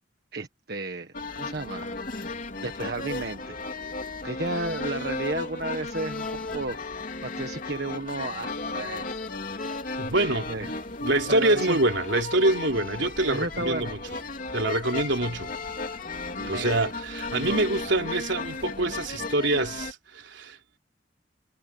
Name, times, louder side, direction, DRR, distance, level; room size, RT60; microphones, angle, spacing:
voice 1, 0.3-1.9 2.6-3.6 4.2-6.8 7.2-9.1 10.1-10.7 11.3-11.8 13.2-13.9 16.4-16.7 17.4-17.6, right 2 dB, 60° right, 1.6 m, -33 dB
sound 1, 1.1-19.9, left 3 dB, 45° left, 3.0 m, -35 dB
voice 2, 10.0-10.7 11.0-14.0 14.5-15.5 16.5-20.6, right 2 dB, 75° right, 3.7 m, -25 dB
head